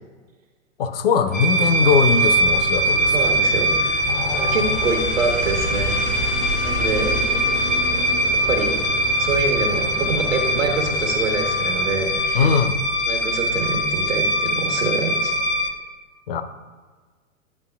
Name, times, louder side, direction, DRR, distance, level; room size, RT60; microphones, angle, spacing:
voice 1, 0.8-3.1 4.1-4.7 12.3-12.7 16.3-16.4, left 6 dB, 45° left, 9 dB, 0.5 m, -21 dB
sound 1, 1.3-15.7, equal, 75° left, 0.9 m, -22 dB
sound 2, 1.3-12.6, left 1 dB, 55° right, 1.0 m, -36 dB
sound 3, 1.6-11.9 12.2-12.3, right 2 dB, 15° right, 0.4 m, -32 dB
voice 2, 3.1-4.0 4.3-6.0 6.6-7.2 8.5-8.8 9.2-12.5 13.1-15.3, right 4 dB, 75° right, 1 dB, 1.2 m, -26 dB
9.6 x 5.4 x 2.3 m, 1.4 s
figure-of-eight pair, 105°, 40 cm